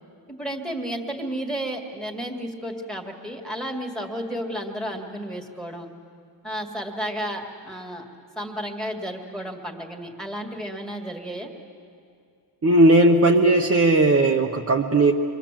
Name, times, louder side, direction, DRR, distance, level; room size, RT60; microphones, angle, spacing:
voice 1, 0.3-5.9 6.4-8.0 8.4-11.5, equal, ahead, 1 dB, 2.1 m, -32 dB
voice 2, 12.6-15.1, right 2 dB, 30° right, 1 dB, 1.0 m, -17 dB
26.0 x 23.5 x 7.6 m, 2.4 s
wide cardioid pair, 160°, 44 cm